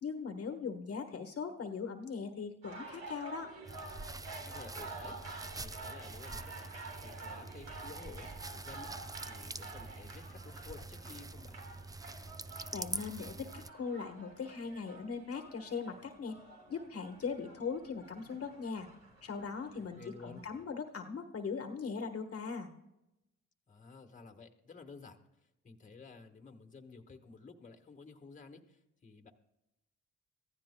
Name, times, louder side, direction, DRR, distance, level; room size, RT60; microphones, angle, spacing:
voice 1, 0.0-3.5 12.7-16.4 16.7-18.9 19.2-22.7, left 5 dB, 50° left, 5 dB, 1.3 m, -40 dB
sound 1, 2.6-20.6, right 3 dB, 60° right, 4.0 m, -50 dB
sound 2, 3.7-13.7, right 3 dB, 10° right, 0.5 m, -45 dB
voice 2, 4.4-5.2 5.6-6.5 7.0-8.9 9.2-11.6 19.7-20.4 23.7-29.3, left 4 dB, 25° left, 4 dB, 1.5 m, -53 dB
25.5 x 15.0 x 2.3 m, 0.91 s
cardioid pair, 90°, 30 cm